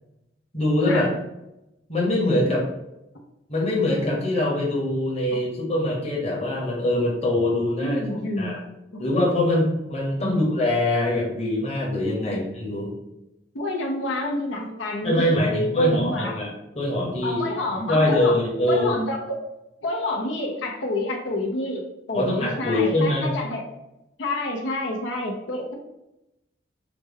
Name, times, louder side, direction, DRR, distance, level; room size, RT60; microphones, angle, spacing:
voice 1, 0.5-1.1 1.9-2.7 3.5-8.0 8.4-8.6 9.0-12.9 15.0-16.5 16.7-18.9 22.1-23.3, left 1 dB, 35° left, -3 dB, 1.0 m, -23 dB
voice 2, 7.8-8.6 8.9-9.0 10.2-10.4 12.2-12.4 13.5-16.5 17.2-18.4 18.7-19.4 19.8-23.6 24.2-25.7, left 1 dB, 90° left, -1 dB, 0.7 m, -28 dB
4.9 x 2.2 x 3.4 m, 0.89 s
head